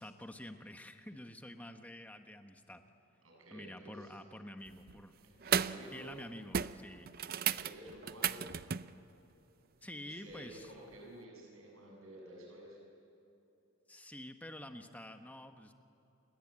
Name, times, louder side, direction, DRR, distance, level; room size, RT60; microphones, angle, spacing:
voice 1, 0.0-2.8 3.5-5.2 5.9-7.1 9.8-10.7 13.9-15.7, left 1 dB, 5° left, 6 dB, 1.3 m, -48 dB
voice 2, 3.2-4.1 5.2-6.1 7.4-8.4 10.0-12.8, right 1 dB, 80° right, -1 dB, 7.6 m, -52 dB
sound 1, 4.7-5.0 5.4-5.9 6.1-6.3 6.5-8.9 10.9-11.0, right 8 dB, 45° right, 0.5 m, -35 dB
29.0 x 22.5 x 8.9 m, 3.0 s
head